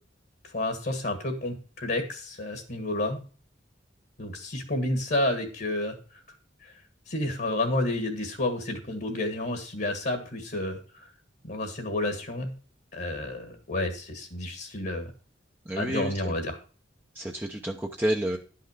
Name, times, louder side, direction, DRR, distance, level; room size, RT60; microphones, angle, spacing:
voice 1, 0.4-3.2 4.2-6.0 6.6-6.7 7.1-11.1 11.4-12.5 12.9-15.1 15.7-16.6, left 1 dB, 55° left, 5 dB, 1.6 m, -30 dB
voice 2, 15.6-16.3 17.1-18.4, right 1 dB, 10° right, 1 dB, 0.7 m, -30 dB
11.5 x 5.8 x 4.9 m, 0.39 s
head